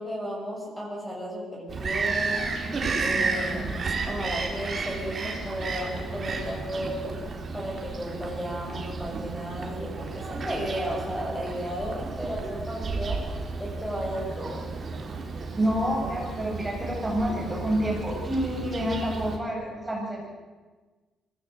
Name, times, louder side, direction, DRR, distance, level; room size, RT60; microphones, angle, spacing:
voice 1, 0.0-2.5 3.0-3.8 4.1-7.2 7.5-13.2 13.6-14.7 15.7-15.8 16.0-16.1, equal, 5° left, -2 dB, 7.1 m, -34 dB
Bird vocalization bird call bird song, 1.7-19.4, right 4 dB, 45° right, 3.8 m, -33 dB
voice 2, 15.6-20.3, equal, 15° right, -2 dB, 6.9 m, -28 dB
23.0 x 16.5 x 7.9 m, 1.3 s
cardioid pair, 90°, 0 cm